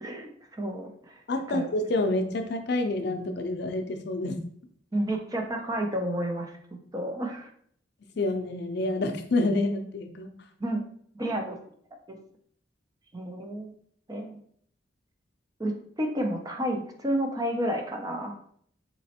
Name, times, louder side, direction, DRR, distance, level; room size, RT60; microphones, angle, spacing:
voice 1, 0.0-1.2 1.5-1.7 4.9-6.5 6.9-7.5 10.6-10.8 11.1-11.6 12.1-12.2 13.1-13.7 14.1-14.4 15.6-18.4, right 1 dB, 20° right, 3 dB, 0.5 m, -31 dB
voice 2, 1.3-4.4 8.2-10.3, left 2 dB, 60° left, 6 dB, 0.5 m, -28 dB
4.0 x 3.0 x 2.8 m, 0.62 s
head